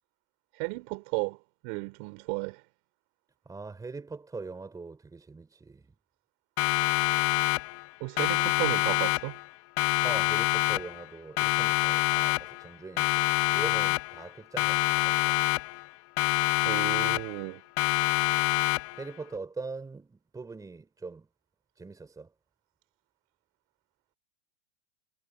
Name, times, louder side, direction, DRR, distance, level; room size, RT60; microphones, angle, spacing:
voice 1, 0.5-1.4 1.6-2.6 8.0-9.4 16.7-17.6, right 31 dB, 45° right, 3.5 m, -34 dB
voice 2, 3.5-5.9 10.0-15.4 19.0-21.3 21.8-22.3, right 4 dB, 10° right, 3.8 m, -42 dB
Siren, 6.6-7.9 8.2-9.5 9.8-11.1 11.4-12.7 13.0-14.3 14.6-15.9 16.2-17.5 17.8-19.1, left 22 dB, 40° left, 1.3 m, -26 dB
hypercardioid pair, 125°, 33 cm